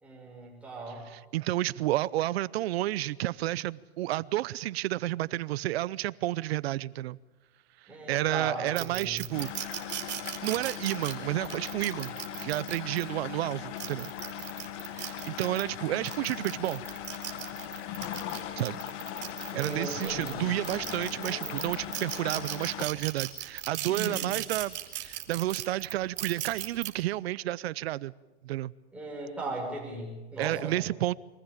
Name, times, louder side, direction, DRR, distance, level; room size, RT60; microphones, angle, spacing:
voice 1, 0.0-1.1 7.9-9.2 19.5-20.5 23.9-24.3 28.9-30.7, right 2 dB, 5° right, 6.2 m, -37 dB
voice 2, 1.1-7.2 8.1-9.5 10.4-12.2 12.4-14.1 14.9-16.8 18.6-18.8 19.5-28.1 28.4-28.7 30.4-31.1, right 16 dB, 65° right, 0.7 m, -31 dB
sound 1, 8.8-13.0 13.6-15.6 16.0-20.3 20.6-26.9, right 13 dB, 35° right, 2.1 m, -37 dB
sound 2, 9.3-22.9, left 11 dB, 40° left, 1.8 m, -39 dB
sound 3, 16.1-22.5, left 6 dB, 80° left, 2.2 m, -51 dB
23.0 x 15.0 x 8.9 m
hypercardioid pair, 130°, 33 cm